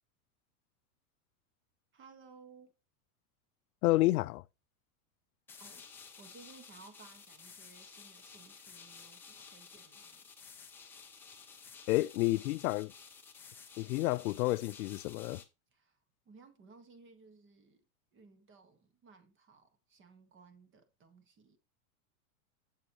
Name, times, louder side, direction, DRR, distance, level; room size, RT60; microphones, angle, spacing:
voice 1, 1.9-2.7 5.6-5.8 6.2-10.3 15.7-16.0 16.2-17.8 18.1-21.6, right 4 dB, 25° right, 1.5 m, -58 dB
voice 2, 3.8-4.4 11.9-12.9 13.8-15.4, left 19 dB, 70° left, 0.5 m, -30 dB
sound 1, 5.5-15.4, left 6 dB, 5° left, 0.3 m, -53 dB
7.6 x 7.3 x 3.0 m
supercardioid pair, 140°, 45 cm